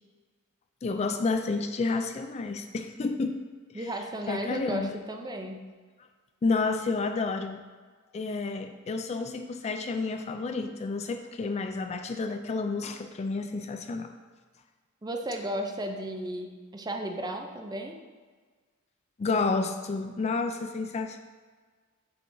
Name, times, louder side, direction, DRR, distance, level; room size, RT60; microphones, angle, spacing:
voice 1, 0.8-3.4 3.7-3.9 4.3-5.0 6.4-7.6 8.1-14.1 19.2-21.2, left 3 dB, 30° left, 6 dB, 0.3 m, -30 dB
voice 2, 3.7-5.6 15.0-17.9, right 1 dB, 20° right, 4 dB, 0.6 m, -34 dB
8.1 x 6.1 x 2.6 m, 1.5 s
head